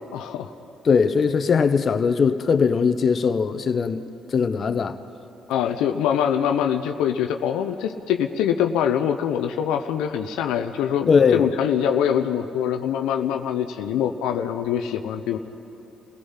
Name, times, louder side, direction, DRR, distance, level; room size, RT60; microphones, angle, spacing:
voice 1, 0.1-0.5 5.5-15.4, left 9 dB, 80° left, 0.7 m, -24 dB
voice 2, 0.8-4.0 4.3-5.0 11.1-11.5, left 5 dB, 50° left, 0.9 m, -20 dB
29.0 x 17.0 x 5.7 m
supercardioid pair, 60°, 0 cm